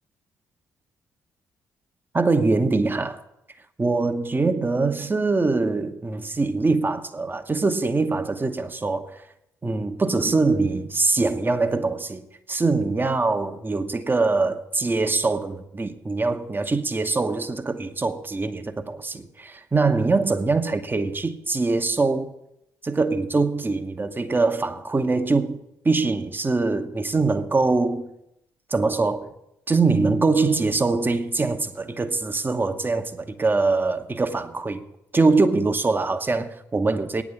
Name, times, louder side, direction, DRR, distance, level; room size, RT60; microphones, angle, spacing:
voice 1, 2.1-3.2 3.8-9.2 9.6-22.3 22.8-28.1 28.7-29.3 29.7-34.8 35.1-37.2, right 3 dB, 25° right, 1.0 m, -23 dB
9.5 x 7.2 x 8.5 m
hypercardioid pair, 45°, 8 cm